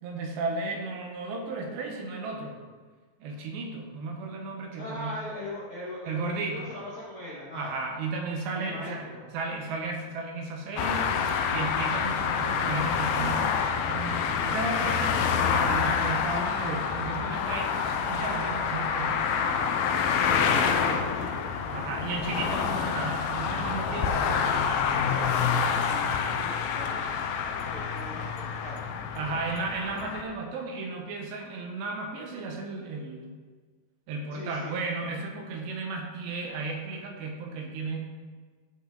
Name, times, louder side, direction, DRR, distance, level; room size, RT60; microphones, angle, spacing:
voice 1, 0.0-2.6 3.2-5.2 6.1-6.7 7.5-11.1 11.5-13.5 13.9-17.8 18.1-19.3 21.7-24.5 29.2-33.4 34.1-38.0, right 3 dB, 75° right, 1 dB, 3.0 m, -34 dB
voice 2, 4.8-7.7 8.5-9.2 20.1-21.8 24.2-24.6 24.9-27.0 27.5-29.6 34.3-34.8, left 1 dB, 50° left, -9 dB, 1.7 m, -41 dB
sound 1, 10.8-30.2, left 6 dB, 85° left, 2.1 m, -27 dB
14.5 x 5.1 x 3.9 m, 1.5 s
omnidirectional pair, 5.2 m